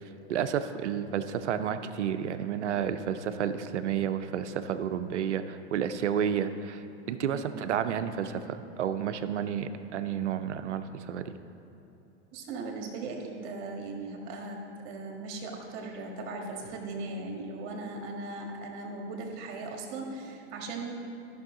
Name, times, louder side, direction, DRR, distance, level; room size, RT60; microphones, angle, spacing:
voice 1, 0.3-6.8 7.1-11.2, right 8 dB, 90° right, 10 dB, 0.6 m, -31 dB
voice 2, 12.3-14.6 14.8-20.9, right 3 dB, 55° right, 1 dB, 1.8 m, -38 dB
13.0 x 6.2 x 3.8 m, 3.0 s
hypercardioid pair, 110°, 34 cm